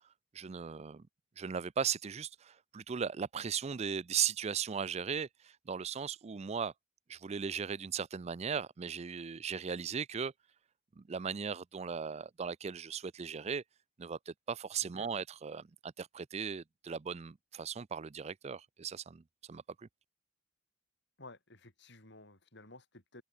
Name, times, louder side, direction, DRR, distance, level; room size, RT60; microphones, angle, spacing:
voice 1, 0.3-1.1 1.4-6.7 7.1-10.3 11.0-13.6 14.0-19.9, right 7 dB, 35° right, 0.4 m, -37 dB
voice 2, 21.2-23.2, left 2 dB, 60° left, 7.3 m, -54 dB
head